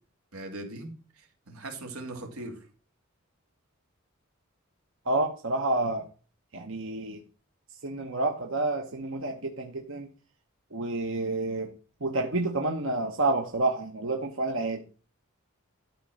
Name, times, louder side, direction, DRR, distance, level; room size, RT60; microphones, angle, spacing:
voice 1, 0.3-2.7, right 2 dB, 90° right, 2.8 m, -40 dB
voice 2, 5.1-6.0 6.5-7.2 7.8-10.1 10.7-11.7 12.0-14.8, right 2 dB, 65° right, 1.2 m, -29 dB
12.5 x 4.2 x 6.3 m
head